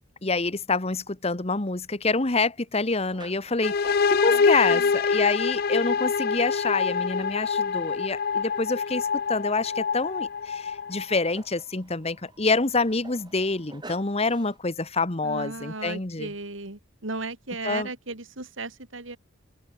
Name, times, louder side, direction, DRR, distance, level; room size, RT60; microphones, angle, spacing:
voice 1, 0.2-16.3 17.6-17.9, left 3 dB, 30° left, 1.3 m, -27 dB
sound 1, 3.1-14.6, right 3 dB, 25° right, 5.8 m, -52 dB
sound 2, 3.6-11.3, left 5 dB, 50° left, 0.5 m, -25 dB
voice 2, 4.3-4.9 15.2-19.2, right 3 dB, 85° right, 3.6 m, -36 dB
head